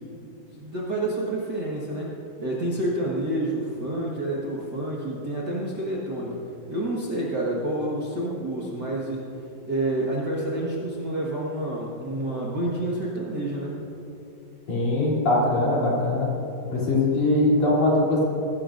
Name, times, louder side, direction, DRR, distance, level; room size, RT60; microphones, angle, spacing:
voice 1, 0.5-2.1 2.4-9.2 9.6-13.8, right 1 dB, 85° right, -5 dB, 0.9 m, -28 dB
voice 2, 14.7-16.3 16.7-18.2, left 2 dB, 50° left, -6 dB, 4.4 m, -21 dB
20.0 x 16.0 x 2.6 m, 2.9 s
omnidirectional pair, 4.6 m